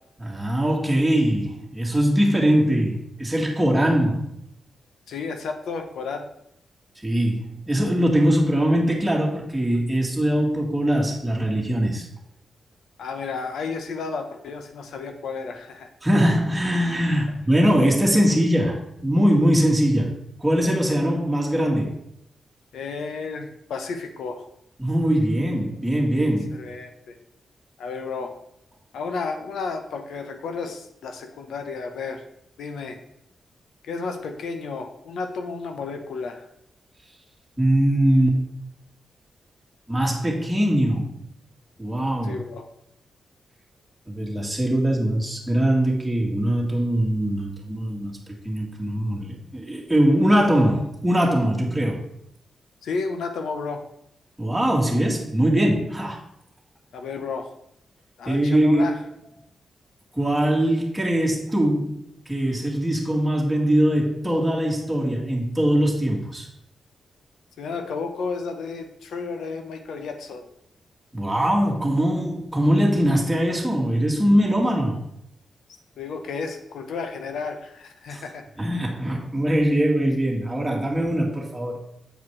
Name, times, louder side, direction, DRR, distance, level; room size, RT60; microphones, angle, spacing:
voice 1, 0.2-4.3 7.0-12.1 16.0-20.1 20.4-22.0 24.8-26.6 37.6-38.4 39.9-41.2 41.8-42.4 44.1-48.1 48.4-52.0 54.4-56.2 58.3-58.9 60.1-66.5 71.1-75.0 78.1-78.2 78.6-81.8, equal, 10° right, -2 dB, 2.2 m, -21 dB
voice 2, 5.1-6.3 13.0-15.9 22.7-24.5 26.5-27.1 27.8-28.3 28.9-32.2 32.6-33.0 33.8-36.5 42.2-42.7 52.8-53.8 56.9-57.5 58.2-59.0 67.6-70.5 76.0-78.4, left 4 dB, 85° left, 6 dB, 1.0 m, -32 dB
8.0 x 4.9 x 4.7 m, 0.74 s
cardioid pair, 80°, 0 cm